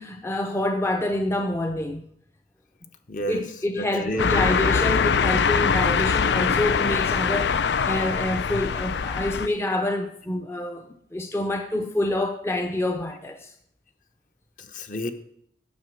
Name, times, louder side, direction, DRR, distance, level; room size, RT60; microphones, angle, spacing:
voice 1, 0.0-2.0 3.3-13.5, left 1 dB, 15° left, 0.6 m, -27 dB
voice 2, 3.1-3.4 3.8-4.6 14.6-15.1, equal, 45° left, 1.0 m, -31 dB
sound 1, 4.2-9.5, left 6 dB, 80° left, 0.4 m, -23 dB
9.4 x 7.7 x 6.3 m
head